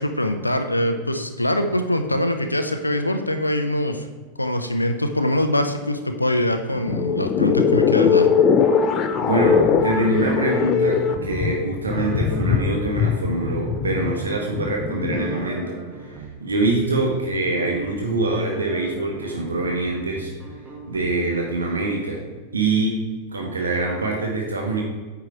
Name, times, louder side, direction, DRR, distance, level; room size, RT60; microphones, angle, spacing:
voice 1, 0.0-4.1 4.4-8.3, left 1 dB, 85° left, 7 dB, 0.6 m, -23 dB
sound 1, 6.7-15.4, left 6 dB, 30° left, 0.5 m, -21 dB
sound 2, 8.6-21.5, right 3 dB, 20° right, 1.5 m, -40 dB
voice 2, 9.2-20.3 20.9-22.2 22.5-23.0 23.3-24.8, right 2 dB, 75° right, -1 dB, 1.2 m, -24 dB
8.8 x 4.7 x 4.5 m, 1.3 s
figure-of-eight pair, 90°, 0 cm